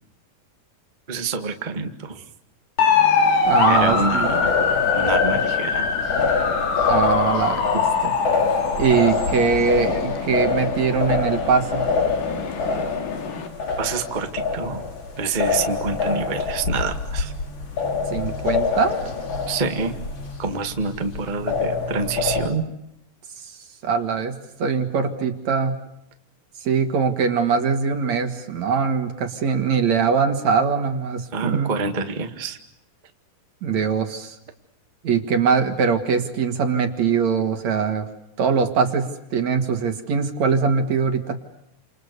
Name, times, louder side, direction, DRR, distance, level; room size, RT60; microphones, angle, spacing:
voice 1, 1.1-2.2 3.7-4.6 4.9-6.0 7.7-7.8 13.8-14.9 15.2-17.3 19.5-19.9 20.4-22.6 31.3-32.6, right 4 dB, 75° right, 6 dB, 0.4 m, -27 dB
sound 1, 2.8-13.5, left 6 dB, 80° left, 5.1 m, -24 dB
sound 2, 3.4-22.5, left 4 dB, 35° left, 2.9 m, -26 dB
voice 2, 3.4-4.3 6.9-7.6 8.0-8.1 8.8-11.9 18.1-19.0 23.8-25.8 26.6-31.7 33.6-34.4 35.0-38.1 38.4-41.4, right 5 dB, 50° right, 6 dB, 2.9 m, -22 dB
29.0 x 28.5 x 6.9 m, 0.81 s
omnidirectional pair, 4.7 m